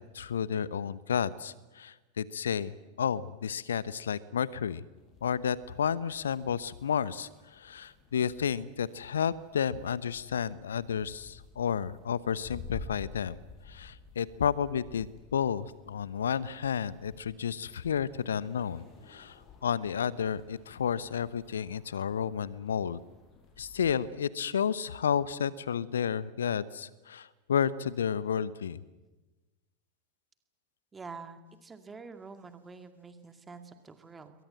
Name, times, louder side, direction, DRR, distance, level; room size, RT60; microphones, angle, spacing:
voice 1, 0.0-4.8 5.2-13.4 13.6-23.0 23.6-28.8, left 8 dB, 65° left, 18 dB, 1.0 m, -31 dB
sound 1, 4.9-24.1, left 4 dB, 35° left, 5.4 m, -52 dB
voice 2, 30.9-34.3, right 4 dB, 15° right, 8 dB, 2.3 m, -47 dB
28.0 x 22.5 x 7.7 m, 1.2 s
figure-of-eight pair, 90°, 0 cm